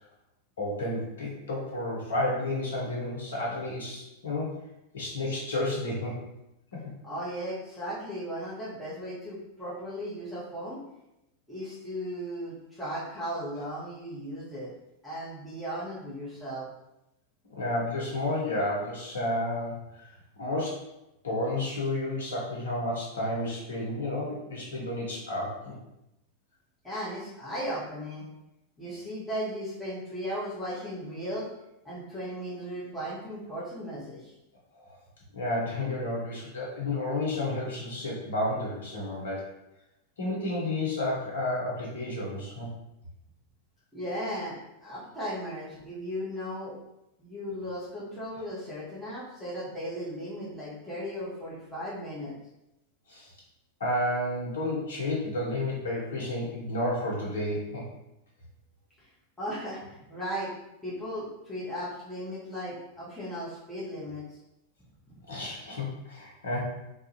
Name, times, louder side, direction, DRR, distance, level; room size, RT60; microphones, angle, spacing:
voice 1, 0.6-4.6 4.9-6.2 6.7-6.9 17.5-20.9 21.2-25.7 34.7-34.9 35.3-39.4 40.2-42.7 53.1-53.3 53.8-57.8 65.3-66.6, left 1 dB, 65° left, -3 dB, 0.7 m, -31 dB
voice 2, 7.0-10.8 11.5-14.7 15.0-16.7 26.8-28.3 28.8-31.5 31.8-34.3 43.9-46.8 47.2-52.3 59.4-60.5 60.8-64.4, equal, 5° left, -9 dB, 0.8 m, -36 dB
2.3 x 2.0 x 2.8 m, 0.89 s
figure-of-eight pair, 90°, 0 cm